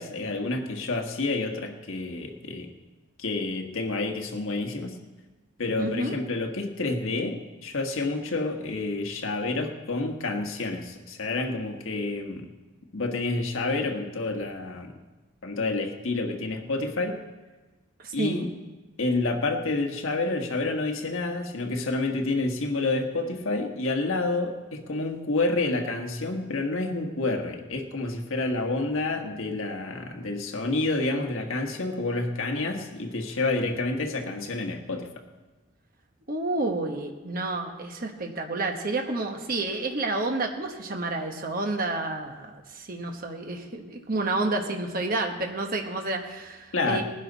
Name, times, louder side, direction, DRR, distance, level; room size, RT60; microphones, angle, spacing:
voice 1, 0.0-2.7 3.2-5.0 5.6-12.5 12.9-14.9 15.4-17.2 18.1-18.5 19.0-35.1 46.7-47.0, left 2 dB, 80° left, 3 dB, 1.4 m, -29 dB
voice 2, 5.8-6.1 18.0-18.4 36.3-47.0, right 2 dB, 45° right, 3 dB, 1.1 m, -30 dB
19.5 x 10.5 x 4.0 m, 1.2 s
head